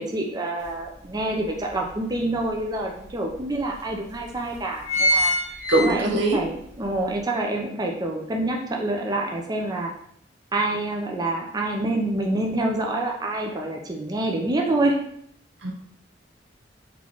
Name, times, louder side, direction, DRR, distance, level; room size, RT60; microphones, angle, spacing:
voice 1, 0.0-9.9 10.5-15.0, right 2 dB, 20° right, 1 dB, 0.5 m, -27 dB
sound 1, 0.6-0.7 1.2-2.4 3.0-3.1 3.3-3.4 4.1-4.3 4.6-6.4 6.8-6.9, left 1 dB, 40° right, 1.3 m, -24 dB
voice 2, 5.7-6.4 15.6-15.7, right 2 dB, 75° right, 2 dB, 0.8 m, -21 dB
3.6 x 3.1 x 3.7 m, 0.68 s
head